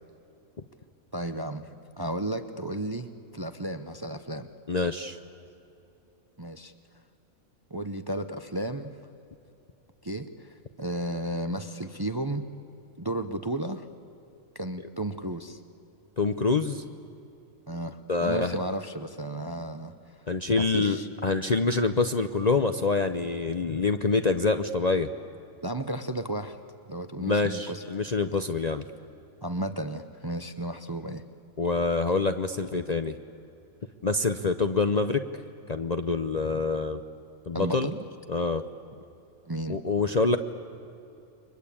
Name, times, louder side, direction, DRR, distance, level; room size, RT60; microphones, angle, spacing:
voice 1, 1.1-1.7 2.0-4.5 6.4-6.7 7.7-9.0 10.0-12.5 13.0-13.9 14.5-15.6 17.7-20.3 20.6-21.1 25.6-26.6 26.9-28.1 29.4-31.2 37.5-38.0 39.4-39.8, right 1 dB, 20° right, 9 dB, 0.7 m, -33 dB
voice 2, 4.7-5.2 16.2-16.8 18.1-18.6 20.3-21.0 21.2-25.1 27.2-28.8 31.6-33.1 34.0-35.2 35.7-37.0 37.5-37.9 38.3-38.6 39.7-40.4, left 3 dB, 40° left, 8 dB, 0.7 m, -26 dB
29.5 x 23.5 x 8.6 m, 2.8 s
omnidirectional pair, 1.4 m